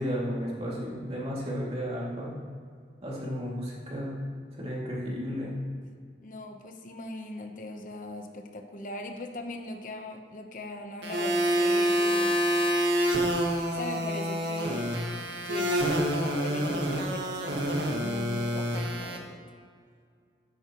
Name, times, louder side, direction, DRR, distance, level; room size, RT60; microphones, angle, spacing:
voice 1, 0.0-2.4 3.0-4.1 4.6-5.5, equal, 35° right, -4 dB, 2.5 m, -33 dB
voice 2, 6.2-12.4 13.7-15.0 15.4-19.4, left 1 dB, 50° left, 4 dB, 0.9 m, -40 dB
sound 1, 11.0-19.2, equal, 85° right, 1.6 m, -27 dB
13.5 x 10.0 x 3.1 m, 2.2 s
head